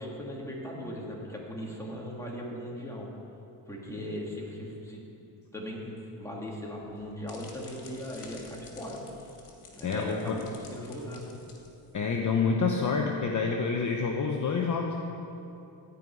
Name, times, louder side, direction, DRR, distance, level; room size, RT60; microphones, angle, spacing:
voice 1, 0.0-3.1 3.7-5.0 5.5-9.1 9.7-11.4, equal, 5° left, -3 dB, 2.3 m, -38 dB
sound 1, 6.8-12.2, left 4 dB, 75° left, 2.3 m, -52 dB
voice 2, 9.8-10.4 11.9-15.0, left 5 dB, 40° left, 1 dB, 0.9 m, -28 dB
14.0 x 5.6 x 9.3 m, 2.8 s
cardioid pair, 130°, 49 cm